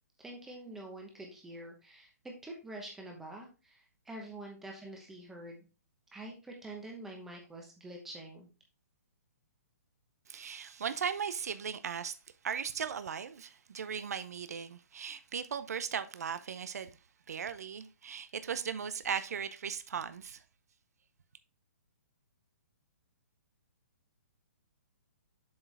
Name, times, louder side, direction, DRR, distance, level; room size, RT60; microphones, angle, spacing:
voice 1, 0.2-5.6 6.1-8.5, right 1 dB, 5° right, 0.9 m, -46 dB
voice 2, 10.3-12.1 12.4-16.9 17.3-20.4, right 7 dB, 70° right, 0.6 m, -37 dB
7.5 x 4.7 x 3.3 m
hypercardioid pair, 175°, 9 cm